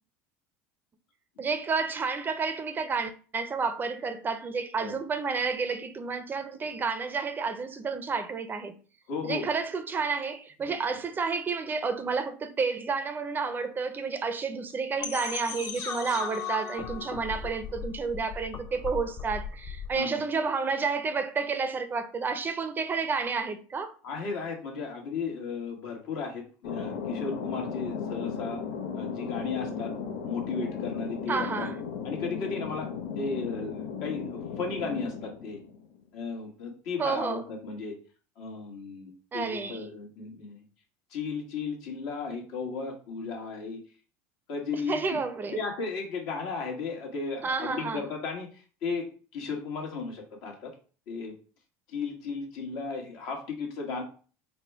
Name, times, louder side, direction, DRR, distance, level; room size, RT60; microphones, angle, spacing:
voice 1, 1.4-8.7 9.2-23.9 31.3-31.8 37.0-37.5 39.3-39.9 44.7-45.6 47.4-48.0, right 5 dB, 25° right, 0.5 m, -30 dB
voice 2, 9.1-9.5 20.0-20.2 24.0-28.6 28.9-29.9 30.2-31.7 32.0-35.6 36.1-38.0 38.4-40.6 41.1-43.8 44.5-45.2 45.5-50.7 51.1-51.3 51.9-54.0, left 4 dB, 65° left, 1.4 m, -35 dB
sound 1, 15.0-20.0, left 6 dB, 45° left, 0.9 m, -37 dB
Thunder, 26.6-36.0, left 6 dB, 90° left, 0.7 m, -36 dB
4.2 x 2.2 x 4.5 m
supercardioid pair, 100°, 7 cm